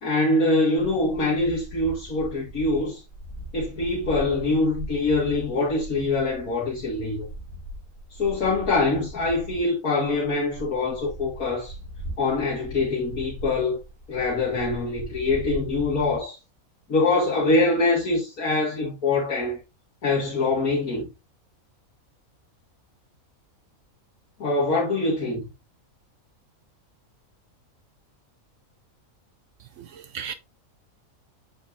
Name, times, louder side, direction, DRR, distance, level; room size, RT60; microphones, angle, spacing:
voice 1, 0.0-3.0 3.5-7.3 8.1-11.7 12.2-13.8 14.1-16.4 16.9-19.6 20.0-21.1 24.4-25.4, left 2 dB, 90° left, 2.5 m, -24 dB
sound 1, 0.8-9.7 10.0-16.2, right 1 dB, 50° left, 3.2 m, -39 dB
voice 2, 29.6-30.3, right 7 dB, 65° right, 0.8 m, -37 dB
8.6 x 5.2 x 2.6 m
omnidirectional pair, 1.5 m